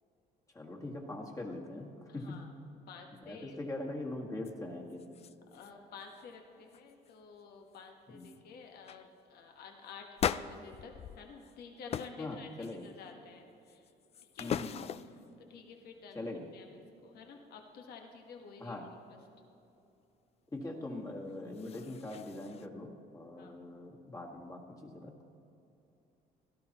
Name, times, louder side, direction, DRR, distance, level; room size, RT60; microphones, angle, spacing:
voice 1, 0.5-2.4 3.1-5.0 8.1-8.3 12.2-12.8 14.4-14.9 16.1-16.4 18.6-18.9 20.5-25.3, left 2 dB, 20° left, 0 dB, 1.7 m, -42 dB
voice 2, 2.1-2.5 2.9-3.6 5.5-13.9 14.3-14.6 15.4-16.2 16.5-19.2 23.4-23.6, left 5 dB, 70° left, 3 dB, 1.4 m, -51 dB
sound 1, 4.4-4.5 4.9-5.7 6.0-6.3 6.7-7.1 7.7-7.8 8.2-8.4 8.8-9.0 10.2-11.6 11.9-12.2 12.6-13.1 13.7-15.3 21.3-22.7, left 8 dB, 40° left, 0.3 m, -39 dB
17.0 x 12.5 x 3.0 m, 2.7 s
cardioid pair, 110°, 17 cm